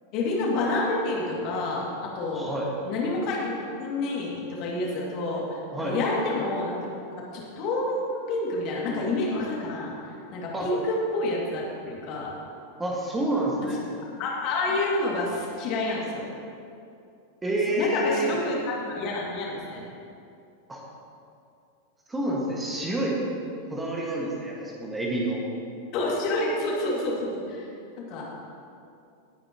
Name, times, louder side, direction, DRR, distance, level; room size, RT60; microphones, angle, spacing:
voice 1, 0.1-2.6 2.8-6.8 7.1-8.0 8.3-9.9 10.3-12.3 14.2-16.3 17.7-19.8 25.9-27.7 28.0-28.3, left 2 dB, 40° left, -3 dB, 2.3 m, -28 dB
voice 2, 2.3-2.7 5.7-6.0 10.5-10.7 12.8-13.8 17.4-18.3 20.7-20.8 22.1-23.2 23.7-25.4, right 1 dB, 10° right, -3 dB, 1.7 m, -28 dB
18.5 x 8.6 x 3.0 m, 2.5 s
figure-of-eight pair, 90°, 0 cm